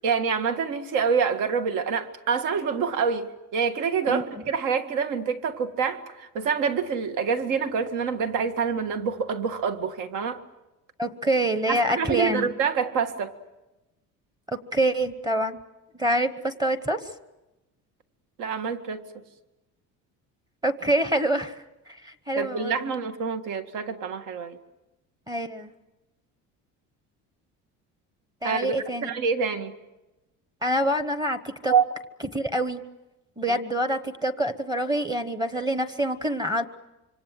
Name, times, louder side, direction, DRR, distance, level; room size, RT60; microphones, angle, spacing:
voice 1, 0.0-10.4 11.7-13.3 18.4-19.2 22.4-24.6 28.4-28.8 29.0-29.7 31.7-31.8 33.5-33.6, right 6 dB, 65° right, 7 dB, 2.1 m, -26 dB
voice 2, 4.1-4.4 11.0-12.5 14.5-15.6 15.9-17.1 20.6-23.0 25.3-25.7 28.4-29.1 30.6-31.7 32.3-32.8 33.4-36.6, right 1 dB, 10° right, 9 dB, 1.1 m, -26 dB
26.5 x 25.5 x 7.7 m, 1.0 s
cardioid pair, 155°, 33 cm